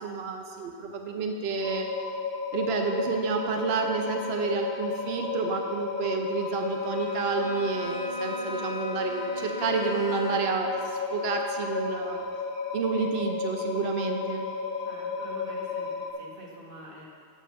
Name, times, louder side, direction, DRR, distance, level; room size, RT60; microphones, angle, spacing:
voice 1, 0.0-1.9 2.5-12.2 12.7-14.5, right 5 dB, 75° right, 4 dB, 0.9 m, -30 dB
sound 1, 1.6-16.1, left 5 dB, 65° left, 1.1 m, -33 dB
Wind instrument woodwind instrument, 6.4-10.4, right 1 dB, 5° right, 1.3 m, -44 dB
Bowed string instrument, 6.7-10.7, left 1 dB, 35° left, 0.9 m, -41 dB
voice 2, 14.8-17.1, equal, 55° right, -3 dB, 1.6 m, -46 dB
7.5 x 5.6 x 6.8 m, 2.3 s
omnidirectional pair, 1.1 m